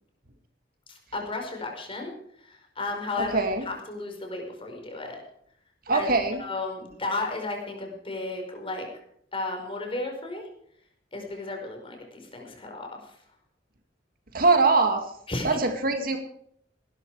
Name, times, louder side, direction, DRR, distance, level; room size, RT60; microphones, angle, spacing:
voice 1, 0.9-2.1 2.4-5.2 5.9-6.1 6.4-8.9 9.3-10.4 11.1-13.0 15.3-15.6, left 2 dB, 30° left, 2 dB, 5.0 m, -34 dB
voice 2, 3.3-3.6 5.9-6.4 14.3-15.0 15.4-16.2, right 3 dB, 50° right, 6 dB, 2.2 m, -22 dB
18.5 x 12.5 x 4.9 m, 0.67 s
head